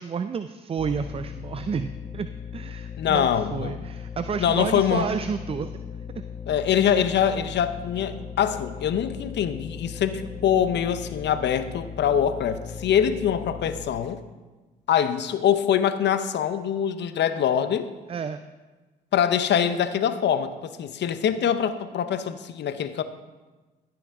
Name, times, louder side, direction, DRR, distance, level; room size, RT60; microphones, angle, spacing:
voice 1, 0.0-5.9 18.1-18.4, right 6 dB, 30° right, 10 dB, 0.4 m, -31 dB
sound 1, 0.8-13.9, left 7 dB, 20° left, 1.2 m, -38 dB
voice 2, 3.0-3.8 4.4-5.1 6.5-14.2 14.9-17.9 19.1-20.5 20.8-23.0, left 9 dB, 60° left, 12 dB, 0.7 m, -24 dB
15.0 x 6.0 x 3.6 m, 1.2 s
supercardioid pair, 55°, 20 cm